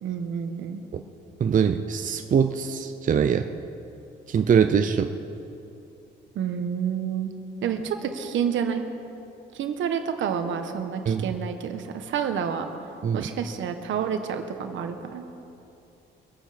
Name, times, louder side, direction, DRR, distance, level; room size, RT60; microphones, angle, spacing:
voice 1, 0.0-0.8 6.3-7.3 7.6-8.8 9.5-12.6 13.1-15.2, right 7 dB, 75° right, 7 dB, 1.3 m, -29 dB
voice 2, 1.4-3.5 4.3-5.1 11.1-11.3 13.0-13.3, right 7 dB, 40° right, 7 dB, 0.6 m, -22 dB
23.5 x 9.2 x 5.1 m, 2.9 s
cardioid pair, 90°, 20 cm